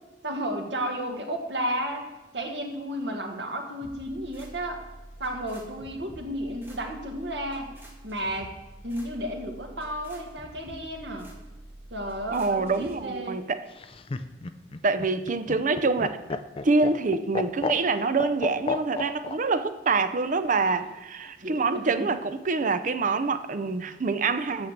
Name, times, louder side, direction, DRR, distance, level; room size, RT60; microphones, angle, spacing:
voice 1, 0.2-2.1 2.3-4.8 5.2-7.7 8.0-8.5 8.8-11.3 11.9-13.4 21.4-21.9, equal, 80° right, 1.6 m, -33 dB
sound 1, 3.8-13.0, right 1 dB, 15° right, 1.9 m, -47 dB
voice 2, 12.3-13.6 14.8-16.2 16.6-24.7, right 4 dB, 45° right, 0.6 m, -26 dB
Laughter, 13.7-19.4 20.7-21.3, left 3 dB, 30° left, 0.5 m, -33 dB
8.7 x 6.7 x 7.4 m
head